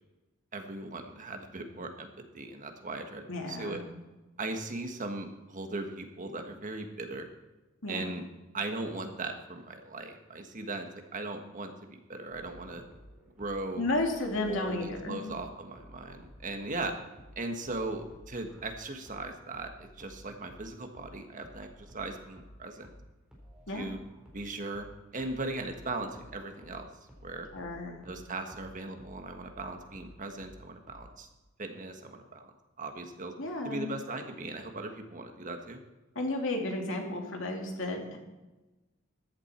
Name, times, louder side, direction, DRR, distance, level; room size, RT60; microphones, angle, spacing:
voice 1, 0.5-2.1 2.3-3.8 4.4-7.3 7.9-8.2 8.5-12.8 13.4-13.8 14.5-16.9 17.3-22.9 23.7-24.0 24.3-26.9 27.2-27.5 28.0-31.3 31.6-32.5 32.8-33.3 33.6-35.8, right 2 dB, 40° right, 5 dB, 1.5 m, -38 dB
voice 2, 3.3-3.8 7.8-8.1 13.8-15.2 23.7-23.9 27.5-28.0 33.4-33.9 36.1-38.2, left 2 dB, 65° left, 2 dB, 2.6 m, -33 dB
sound 1, 12.3-31.1, equal, 5° right, 4.1 m, -54 dB
14.5 x 11.0 x 4.4 m, 1.1 s
head